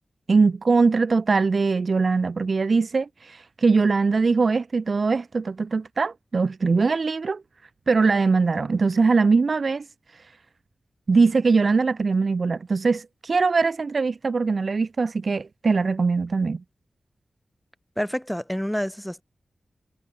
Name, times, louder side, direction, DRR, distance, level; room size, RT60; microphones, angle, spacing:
voice 1, 0.3-7.4 7.9-9.9 11.1-16.6, right 4 dB, 50° right, 2.6 m, -21 dB
voice 2, 18.0-19.2, equal, 5° left, 6.4 m, -28 dB
wide cardioid pair, 130°, 0 cm